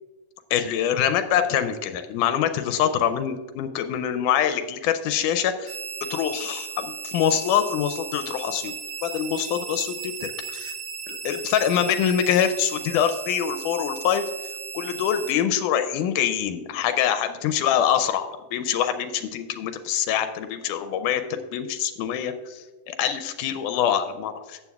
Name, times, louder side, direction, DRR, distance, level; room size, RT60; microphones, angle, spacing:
voice 1, 0.5-5.8 6.1-8.8 9.0-10.7 11.1-14.3 14.7-24.6, left 9 dB, 85° left, 8 dB, 2.1 m, -25 dB
sound 1, 5.7-15.3, right 6 dB, 60° right, 1.9 m, -36 dB
14.0 x 8.7 x 2.3 m, 1.2 s
omnidirectional pair, 3.6 m